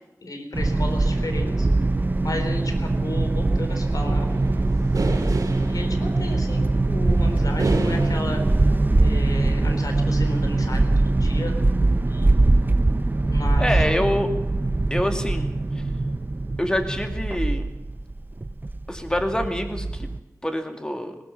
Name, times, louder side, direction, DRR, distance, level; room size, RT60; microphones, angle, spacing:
voice 1, 0.2-1.7 2.2-4.3 5.0-8.4 9.0-11.5 12.1-12.5 13.2-13.7, left 2 dB, 85° left, 5 dB, 3.8 m, -34 dB
sound 1, 0.5-20.2, right 2 dB, 30° right, 0.7 m, -22 dB
sound 2, 3.7-8.7, right 3 dB, 90° right, 2.2 m, -31 dB
voice 2, 13.6-14.3 14.9-15.8 16.6-17.7 18.9-20.1 20.4-21.2, left 1 dB, 15° left, 5 dB, 2.5 m, -26 dB
20.0 x 18.5 x 7.2 m, 0.94 s
wide cardioid pair, 75°, 6 cm